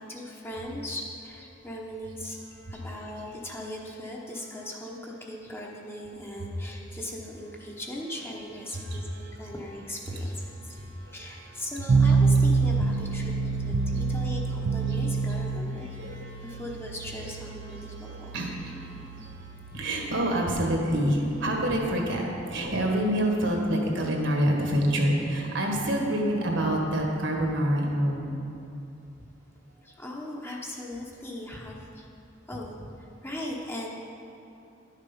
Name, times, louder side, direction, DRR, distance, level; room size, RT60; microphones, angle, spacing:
voice 1, 0.0-2.4 2.7-10.7 11.1-16.2 16.4-18.5 21.7-21.8 22.7-22.8 29.8-32.0 32.5-33.9, left 1 dB, 10° left, -2 dB, 0.9 m, -39 dB
voice 2, 8.7-9.0 10.7-11.2 13.9-14.0 15.9-16.6 18.0-19.3 19.7-28.4, right 1 dB, 70° right, 0 dB, 1.6 m, -27 dB
sound 1, 11.9-23.0, right 4 dB, 45° right, 0.4 m, -28 dB
11.0 x 6.6 x 5.5 m, 2.8 s
head